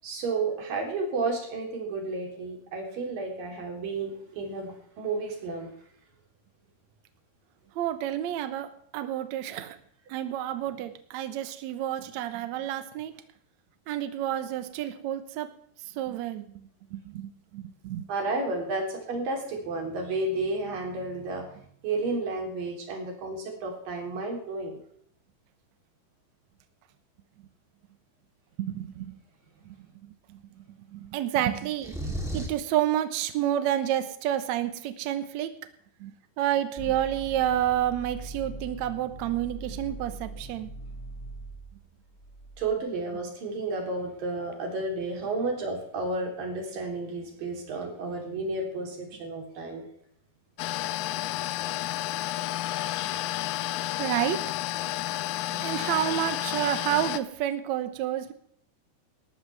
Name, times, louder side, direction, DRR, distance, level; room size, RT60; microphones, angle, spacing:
voice 1, 0.0-5.7 18.1-21.4 21.8-24.8 42.6-49.9, right 3 dB, 55° right, 1 dB, 4.9 m, -32 dB
voice 2, 7.7-9.8 10.1-13.1 13.9-15.5 15.9-16.4 16.9-18.0 28.6-29.1 30.3-30.4 30.9-32.0 32.3-35.5 36.0-36.1 36.4-40.7 54.0-54.4 55.5-58.3, right 12 dB, 80° right, 9 dB, 1.6 m, -29 dB
sound 1, 31.8-32.7, right 1 dB, ahead, 2.1 m, -33 dB
sound 2, 36.8-42.7, right 2 dB, 40° left, 0.4 m, -42 dB
sound 3, 50.6-57.2, left 14 dB, 80° left, 2.6 m, -31 dB
19.0 x 13.0 x 3.4 m, 0.65 s
omnidirectional pair, 4.8 m